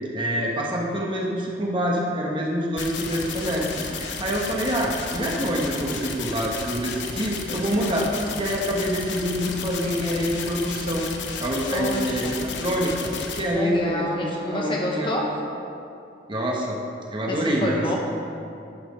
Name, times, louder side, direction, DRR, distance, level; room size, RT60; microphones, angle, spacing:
voice 1, 0.1-8.1 8.4-11.1 11.4-14.0 14.5-15.1 16.3-16.8 17.1-18.0, equal, 30° right, -2 dB, 1.3 m, -26 dB
sound 1, 2.8-13.4, left 5 dB, 80° left, 0.9 m, -33 dB
voice 2, 11.7-12.4 13.5-15.3 17.3-18.0, left 1 dB, 30° left, -2 dB, 1.4 m, -28 dB
11.0 x 6.2 x 5.0 m, 2.6 s
head